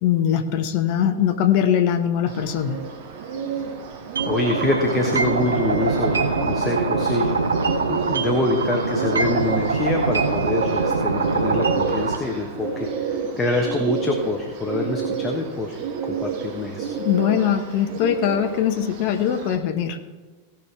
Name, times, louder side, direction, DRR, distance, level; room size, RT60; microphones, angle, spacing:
voice 1, 0.0-2.8 17.0-20.0, left 9 dB, 45° left, 8 dB, 0.8 m, -21 dB
Bird, 2.3-19.6, right 5 dB, 50° right, 1.2 m, -30 dB
sound 1, 4.2-12.2, right 4 dB, 75° right, 0.8 m, -23 dB
voice 2, 4.3-7.5 7.9-16.9, left 2 dB, 15° left, 1 dB, 1.2 m, -26 dB
16.5 x 5.9 x 4.6 m, 1.3 s
figure-of-eight pair, 90°, 0 cm